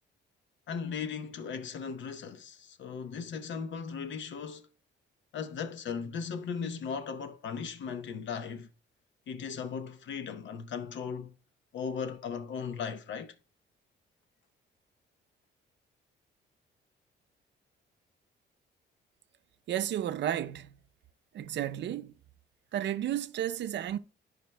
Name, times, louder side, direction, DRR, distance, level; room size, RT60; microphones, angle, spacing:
voice 1, 0.7-4.7 5.3-8.7 9.3-11.4 11.7-13.3, left 6 dB, 70° left, 0.9 m, -37 dB
voice 2, 19.7-20.7 21.3-22.1 22.7-24.0, right 11 dB, 65° right, 0.6 m, -32 dB
15.0 x 5.1 x 2.2 m
cardioid pair, 90°, 20 cm